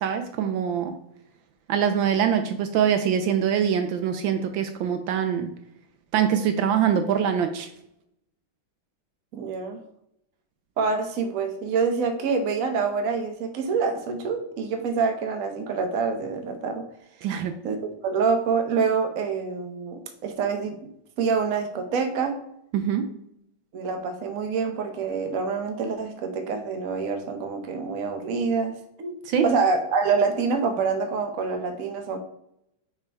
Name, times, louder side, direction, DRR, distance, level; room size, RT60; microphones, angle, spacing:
voice 1, 0.0-0.9 1.7-5.5 6.1-7.7 17.2-17.5 22.7-23.1 29.3-29.4, right 8 dB, 75° right, 7 dB, 1.3 m, -24 dB
voice 2, 9.3-9.8 10.8-16.9 17.6-20.8 21.2-22.4 23.7-29.2 29.4-32.2, right 5 dB, 55° right, 5 dB, 1.0 m, -26 dB
6.6 x 3.5 x 4.5 m, 0.76 s
omnidirectional pair, 2.2 m